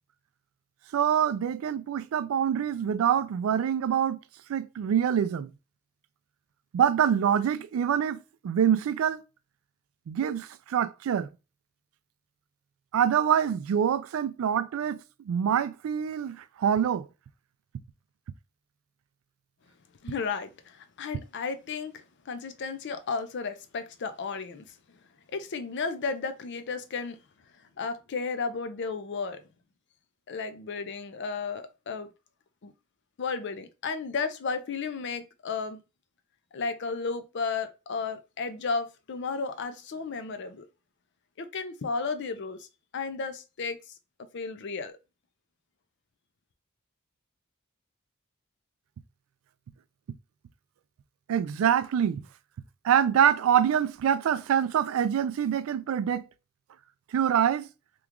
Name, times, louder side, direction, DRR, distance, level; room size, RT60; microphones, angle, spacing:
voice 1, 0.9-4.2 4.5-5.5 6.7-9.2 10.1-11.3 12.9-15.0 15.3-17.1 51.3-52.2 52.8-56.3 57.1-57.7, right 8 dB, 75° right, 0.3 m, -25 dB
voice 2, 20.0-25.0 25.3-27.2 27.8-29.4 30.3-32.1 32.6-32.7 33.2-35.8 36.5-40.7 41.4-42.7 42.9-43.9 44.3-45.0, left 4 dB, 60° left, 0.5 m, -33 dB
3.0 x 2.3 x 3.6 m
head